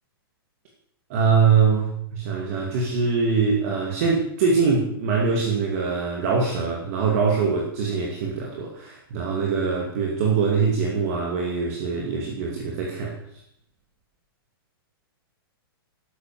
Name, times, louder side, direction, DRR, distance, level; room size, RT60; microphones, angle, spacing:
voice 1, 1.1-13.1, right 5 dB, 35° right, 0 dB, 2.6 m, -23 dB
12.5 x 11.5 x 7.8 m, 0.71 s
hypercardioid pair, 175°, 13 cm